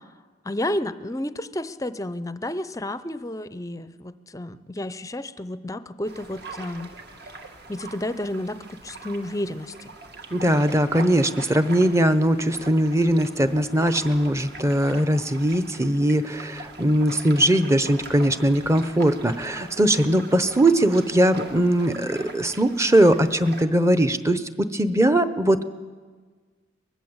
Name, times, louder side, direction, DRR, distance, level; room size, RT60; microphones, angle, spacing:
voice 1, 0.4-6.9 7.7-9.9, left 1 dB, 15° left, 13 dB, 0.6 m, -31 dB
sound 1, 6.0-23.6, right 2 dB, 55° right, 2.0 m, -42 dB
voice 2, 10.3-25.6, right 1 dB, 15° right, 11 dB, 0.8 m, -20 dB
23.0 x 19.5 x 8.0 m, 1.5 s
head